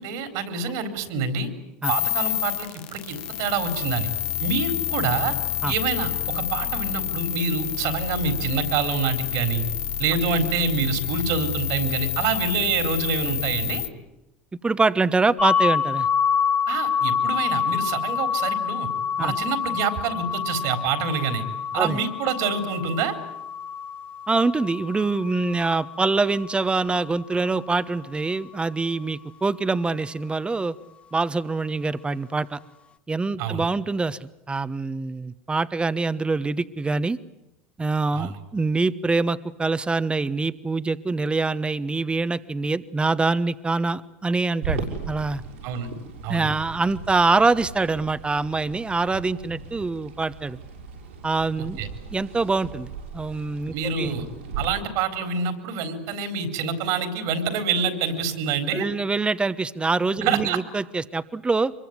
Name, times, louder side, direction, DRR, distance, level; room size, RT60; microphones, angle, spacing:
voice 1, 0.0-1.5 1.9-4.1 4.4-5.3 5.7-9.6 10.0-13.8 16.7-18.9 19.2-21.4 21.7-23.1 33.4-33.7 38.1-38.4 45.6-45.9 46.2-46.6 51.8-51.9 53.7-54.3 54.6-58.9 60.2-60.6, right 5 dB, 70° right, 8 dB, 4.2 m, -26 dB
sound 1, 1.8-13.9, left 11 dB, 65° left, 1.7 m, -28 dB
voice 2, 14.6-16.1 19.2-19.3 21.8-22.0 24.3-30.7 31.1-32.6 33.1-37.2 37.8-45.4 46.3-50.6 51.2-51.8 52.1-54.1 58.7-61.7, right 3 dB, 15° right, 14 dB, 1.2 m, -24 dB
sound 2, 15.4-27.1, left 7 dB, 20° left, 1.2 m, -27 dB
sound 3, 44.6-54.7, right 4 dB, 90° right, 7.2 m, -37 dB
24.5 x 23.0 x 9.6 m, 0.89 s
hypercardioid pair, 90°, 6 cm